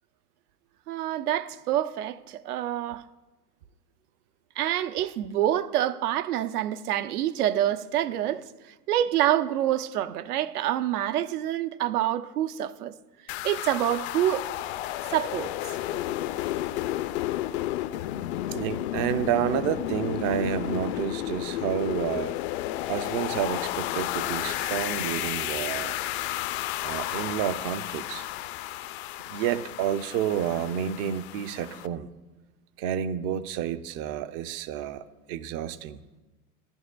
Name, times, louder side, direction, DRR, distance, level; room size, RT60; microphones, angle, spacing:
voice 1, 0.9-3.0 4.6-12.9 13.4-14.4 15.1-15.5 15.9-16.0, right 12 dB, 70° right, 0.7 m, -27 dB
sound 1, 13.3-31.9, left 14 dB, 45° left, 0.5 m, -32 dB
voice 2, 18.5-22.3 22.9-26.0 26.8-28.3 29.2-32.1 32.8-36.0, right 9 dB, 35° right, 0.5 m, -30 dB
15.0 x 11.0 x 2.3 m
hypercardioid pair, 100°, 46 cm